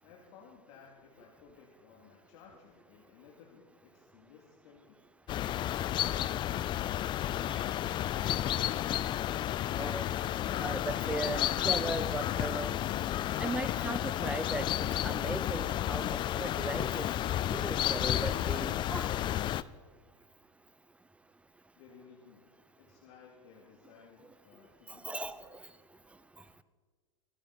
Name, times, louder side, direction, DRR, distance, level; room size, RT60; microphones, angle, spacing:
voice 1, 0.0-5.0 21.8-22.5 22.8-25.6, left 6 dB, 60° left, -1 dB, 2.6 m, -57 dB
sound 1, 5.3-19.6, left 12 dB, 30° left, 0.4 m, -32 dB
voice 2, 10.6-12.8 13.4-14.7 15.0-19.1 25.0-25.6, right 2 dB, 5° right, 14 dB, 0.7 m, -38 dB
25.0 x 9.9 x 4.2 m, 1.5 s
hypercardioid pair, 120°, 17 cm